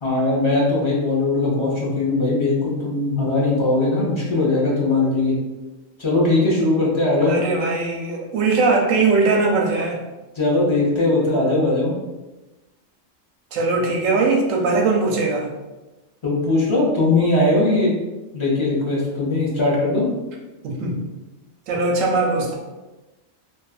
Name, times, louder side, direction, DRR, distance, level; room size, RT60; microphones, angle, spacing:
voice 1, 0.0-5.3 6.0-7.3 10.3-11.9 16.2-17.9 18.3-20.1, left 2 dB, 40° left, -6 dB, 0.4 m, -20 dB
voice 2, 7.2-10.0 13.5-15.5 20.6-21.0 21.7-22.6, right 3 dB, 80° right, 1 dB, 1.0 m, -20 dB
2.6 x 2.4 x 2.3 m, 1.1 s
omnidirectional pair, 1.3 m